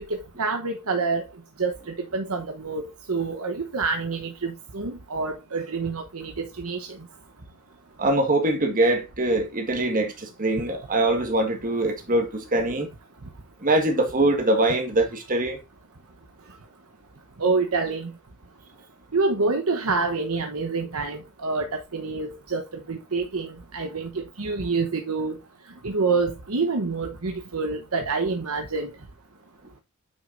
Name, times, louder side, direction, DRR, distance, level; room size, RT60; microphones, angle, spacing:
voice 1, 0.1-1.2 1.6-1.7 2.1-6.9 17.4-18.1 19.1-22.6 22.9-25.4 25.8-28.9, right 4 dB, 75° right, 1.1 m, -27 dB
voice 2, 8.0-12.9 13.6-15.6, right 1 dB, 40° right, 1.8 m, -23 dB
8.6 x 6.3 x 2.6 m
head